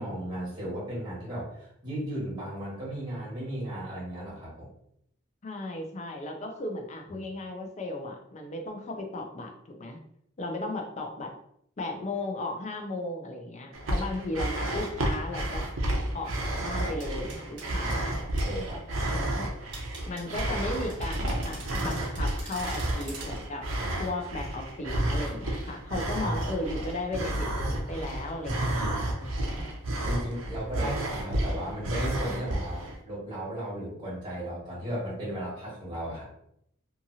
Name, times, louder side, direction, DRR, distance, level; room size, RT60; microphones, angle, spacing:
voice 1, 0.0-4.7 7.1-7.2 17.8-19.5 26.2-26.4 30.0-36.2, right 1 dB, 20° right, -7 dB, 1.5 m, -36 dB
voice 2, 5.4-10.0 10.4-11.4 11.8-15.7 16.1-18.2 19.0-19.5 20.1-23.7 24.0-29.6 30.8-30.9, left 2 dB, 35° left, 3 dB, 0.5 m, -36 dB
sound 1, 13.7-33.0, right 1 dB, 90° right, 0.6 m, -31 dB
sound 2, 17.0-18.0 18.4-18.5 19.7-23.3, right 3 dB, 65° right, 1.1 m, -44 dB
2.7 x 2.5 x 2.7 m, 0.71 s
head